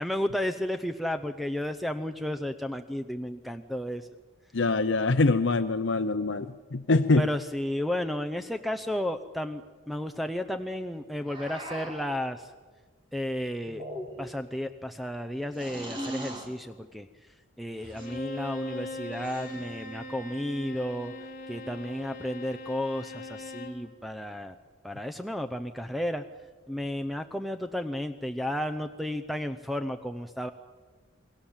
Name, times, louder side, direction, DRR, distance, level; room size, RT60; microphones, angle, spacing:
voice 1, 0.0-4.1 7.2-12.5 13.1-13.8 14.2-21.1 21.5-24.6 24.8-26.2 26.7-30.5, left 1 dB, ahead, 9 dB, 0.7 m, -33 dB
voice 2, 4.5-7.3, left 3 dB, 60° left, 10 dB, 0.7 m, -24 dB
sound 1, 11.3-12.2 13.7-14.4 15.5-16.5 17.8-18.2 19.1-19.8, right 1 dB, 25° right, 3.6 m, -39 dB
Bowed string instrument, 17.9-23.9, left 2 dB, 40° left, 3.4 m, -40 dB
29.0 x 22.0 x 7.4 m, 1.4 s
head